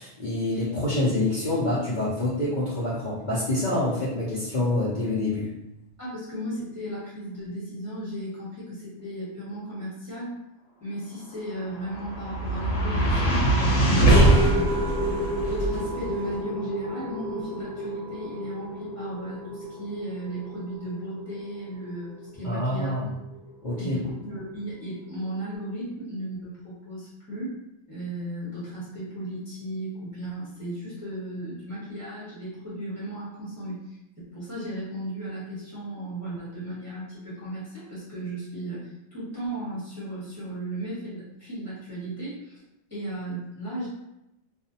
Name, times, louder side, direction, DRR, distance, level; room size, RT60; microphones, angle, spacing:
voice 1, 0.0-5.5 22.4-23.1 23.6-24.0, left 1 dB, 50° left, -10 dB, 0.7 m, -26 dB
voice 2, 6.0-10.4 10.8-22.9 23.8-27.6 27.9-34.0 34.3-42.6 42.9-43.9, right 1 dB, 15° right, -10 dB, 1.0 m, -35 dB
sound 1, 11.5-23.8, right 1 dB, 90° left, 1.0 m, -25 dB
2.4 x 2.0 x 2.7 m, 0.88 s
omnidirectional pair, 1.3 m